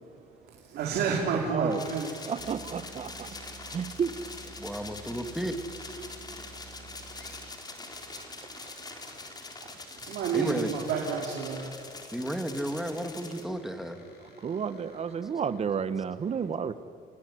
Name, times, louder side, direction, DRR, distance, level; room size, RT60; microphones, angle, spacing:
voice 1, 0.7-2.1 10.1-11.6, right 6 dB, 75° right, -1 dB, 4.2 m, -29 dB
voice 2, 1.5-1.9 2.3-3.3 3.7-4.1 9.6-9.7 14.4-16.7, right 7 dB, 40° right, 13 dB, 1.4 m, -31 dB
sound 1, 1.7-13.4, left 3 dB, 25° left, 3.8 m, -44 dB
sound 2, 2.4-7.7, right 3 dB, 55° right, 4.1 m, -50 dB
voice 3, 4.6-5.6 10.3-10.7 12.1-14.0 15.2-15.3, right 1 dB, ahead, 6 dB, 2.6 m, -33 dB
sound 3, 7.0-7.5 8.5-9.3 10.8-11.7 12.5-16.0, left 5 dB, 75° left, 6.5 m, -59 dB
29.5 x 18.5 x 9.6 m, 2.4 s
cardioid pair, 110°, 17 cm